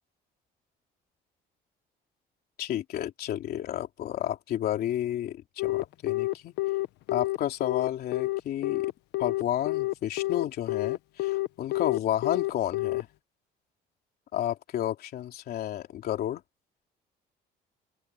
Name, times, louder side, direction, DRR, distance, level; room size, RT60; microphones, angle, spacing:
voice 1, 2.6-6.5 7.1-8.9 9.2-13.1 14.3-16.4, left 12 dB, 65° left, 3.3 m, -31 dB
Telephone, 5.6-13.0, left 19 dB, 85° left, 1.4 m, -28 dB
open air
cardioid pair, 110°, 17 cm